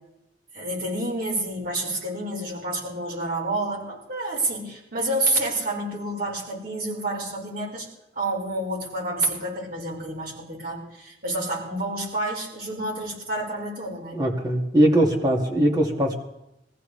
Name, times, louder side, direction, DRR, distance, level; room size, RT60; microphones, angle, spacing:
voice 1, 0.5-7.9 8.2-14.2, right 2 dB, 55° right, -3 dB, 5.6 m, -29 dB
voice 2, 14.1-16.1, right 1 dB, 20° right, -1 dB, 2.4 m, -20 dB
23.5 x 15.0 x 3.4 m, 0.87 s
head